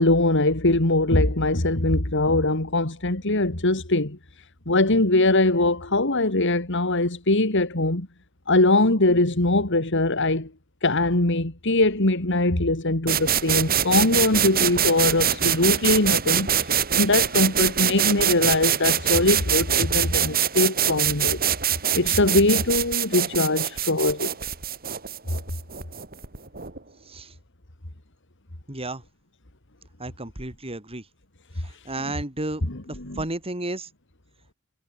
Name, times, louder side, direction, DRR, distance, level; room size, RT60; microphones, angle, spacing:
voice 1, 0.0-4.2 4.7-8.1 8.5-10.5 10.8-21.4 21.9-24.3 33.0-33.2, left 2 dB, 60° left, 3.0 m, -22 dB
sound 1, 13.1-26.8, right 9 dB, 45° right, 5.1 m, -24 dB
voice 2, 28.7-29.0 30.0-31.1 31.6-32.6 32.9-33.9, right 2 dB, 30° right, 4.1 m, -32 dB
head